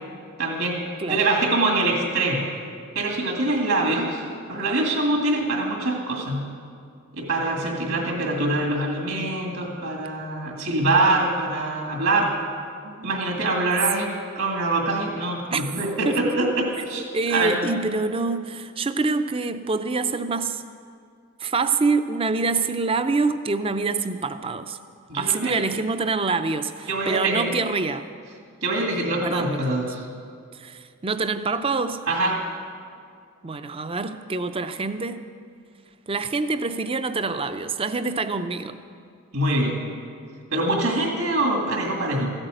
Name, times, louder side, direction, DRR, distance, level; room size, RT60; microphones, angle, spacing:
voice 1, 0.4-0.8 1.1-2.4 3.0-4.2 4.5-6.4 7.1-12.3 13.0-14.1 14.4-17.0 17.3-17.6 25.1-25.5 26.9-27.5 28.6-30.0 32.1-32.3 39.3-39.8 40.5-42.3, right 2 dB, 70° right, 0 dB, 2.2 m, -24 dB
voice 2, 7.6-8.2 12.8-13.1 13.9-14.1 15.5-15.6 16.0-16.2 17.1-20.6 21.4-24.8 25.2-28.1 29.2-29.6 30.5-32.0 33.4-35.2 36.1-38.8, right 4 dB, 25° right, 11 dB, 0.5 m, -26 dB
14.5 x 8.9 x 7.8 m, 2.2 s
head